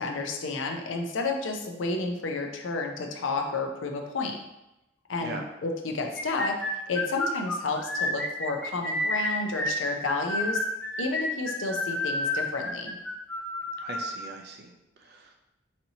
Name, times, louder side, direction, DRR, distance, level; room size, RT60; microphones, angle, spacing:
voice 1, 0.0-4.4 5.1-10.6 11.0-13.0, left 3 dB, 85° left, 3 dB, 0.5 m, -31 dB
sound 1, 6.2-14.2, left 1 dB, 5° left, 0.4 m, -30 dB
voice 2, 13.8-15.4, right 3 dB, 55° right, 3 dB, 0.5 m, -41 dB
4.2 x 2.8 x 2.7 m, 0.93 s
head